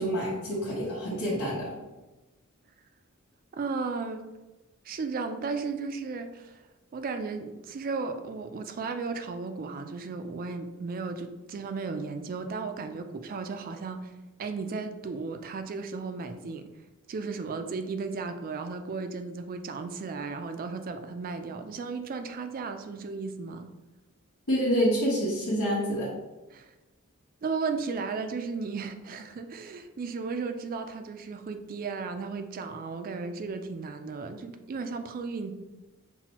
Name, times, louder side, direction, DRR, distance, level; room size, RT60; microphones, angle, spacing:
voice 1, 0.0-1.7 24.5-26.1, equal, 85° left, -10 dB, 1.2 m, -27 dB
voice 2, 3.5-4.2 4.9-6.6 6.9-14.1 14.4-16.7 17.1-23.7 26.5-26.7 27.4-35.5, right 4 dB, 40° right, 7 dB, 0.3 m, -35 dB
5.7 x 2.2 x 2.9 m, 1.1 s
head